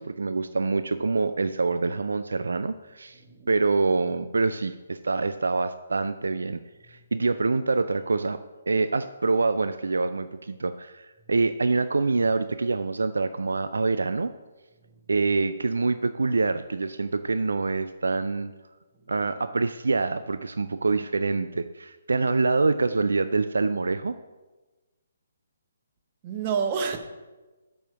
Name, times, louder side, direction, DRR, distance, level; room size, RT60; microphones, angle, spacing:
voice 1, 0.0-3.2 3.5-6.6 6.9-8.4 8.7-14.3 15.1-18.5 19.1-24.1, right 3 dB, 75° right, 11 dB, 0.3 m, -25 dB
voice 2, 26.2-27.0, right 6 dB, 35° right, 6 dB, 0.9 m, -28 dB
7.2 x 5.0 x 6.1 m, 1.2 s
figure-of-eight pair, 140°, 0 cm